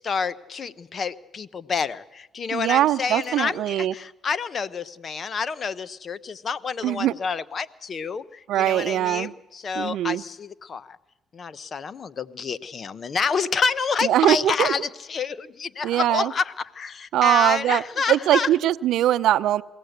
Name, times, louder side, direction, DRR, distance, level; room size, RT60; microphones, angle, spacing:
voice 1, 0.0-11.0 11.3-14.8 15.1-18.5, left 5 dB, 45° left, 15 dB, 0.9 m, -28 dB
voice 2, 2.5-3.9 6.8-7.1 8.5-9.3 9.8-10.2 14.0-14.7 15.8-16.3 17.1-17.8 18.1-19.6, right 12 dB, 75° right, 14 dB, 0.6 m, -21 dB
22.5 x 17.0 x 8.0 m, 1.0 s
supercardioid pair, 75°, 0 cm